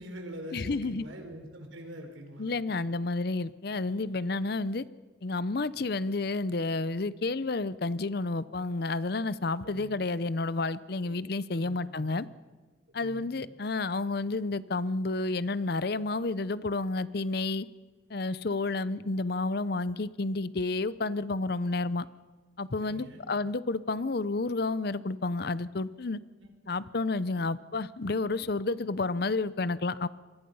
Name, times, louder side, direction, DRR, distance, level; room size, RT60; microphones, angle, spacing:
voice 1, 0.0-2.5 9.6-10.0 11.0-11.1 11.5-12.0 13.0-13.3 22.8-23.2, equal, 80° right, 5 dB, 4.3 m, -44 dB
voice 2, 0.5-1.0 2.4-4.8 5.2-12.3 12.9-17.7 18.1-22.0 22.6-26.2 26.7-30.1, left 3 dB, 55° left, 17 dB, 0.6 m, -30 dB
27.5 x 23.0 x 5.5 m, 1.4 s
head